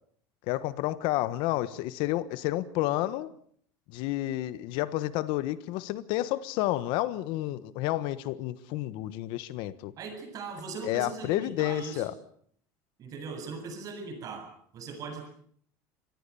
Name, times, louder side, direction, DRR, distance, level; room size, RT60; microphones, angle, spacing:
voice 1, 0.5-3.3 3.9-9.9 10.9-12.1, left 15 dB, 65° left, 15 dB, 1.3 m, -30 dB
voice 2, 10.0-12.1 13.0-15.3, right 4 dB, 40° right, 6 dB, 7.7 m, -39 dB
26.0 x 20.0 x 7.1 m, 0.62 s
cardioid pair, 140°, 9 cm